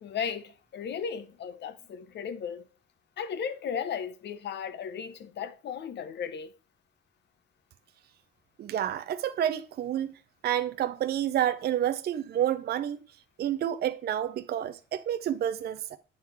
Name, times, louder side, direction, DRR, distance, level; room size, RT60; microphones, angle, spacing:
voice 1, 0.0-2.7 3.2-6.5, left 7 dB, 60° left, 0.8 m, -35 dB
voice 2, 8.6-13.0 13.4-16.0, right 11 dB, 55° right, 0.4 m, -29 dB
8.6 x 3.7 x 4.5 m
cardioid pair, 90°, 20 cm